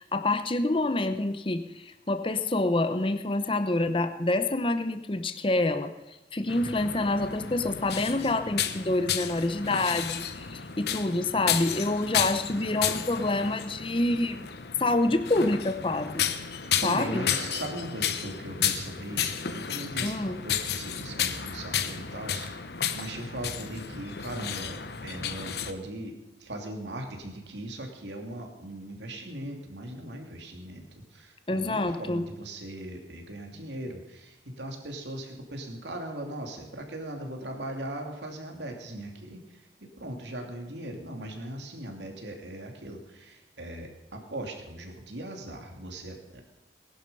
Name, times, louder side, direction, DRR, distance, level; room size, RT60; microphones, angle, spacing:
voice 1, 0.0-5.9 6.3-14.4 14.8-16.2 16.8-17.2 20.0-20.4 31.5-32.3, left 2 dB, 30° left, 9 dB, 0.8 m, -27 dB
sound 1, 6.5-25.7, left 8 dB, 65° left, 0.9 m, -32 dB
voice 2, 16.8-22.5 22.9-26.1 26.4-46.4, right 1 dB, 80° right, 3 dB, 2.8 m, -39 dB
19.5 x 11.0 x 5.5 m, 1.0 s
head